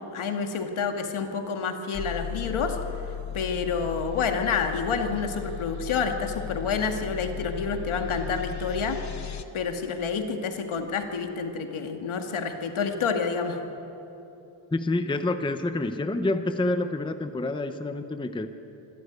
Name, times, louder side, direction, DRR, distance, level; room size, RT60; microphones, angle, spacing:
voice 1, 0.1-2.8 3.3-9.0 9.5-13.6, left 5 dB, 75° left, 5 dB, 2.1 m, -28 dB
sound 1, 1.9-9.4, left 9 dB, 35° left, 1.0 m, -36 dB
voice 2, 14.7-18.5, left 2 dB, 10° left, 8 dB, 0.7 m, -28 dB
25.5 x 13.0 x 9.5 m, 3.0 s
wide cardioid pair, 175°, 49 cm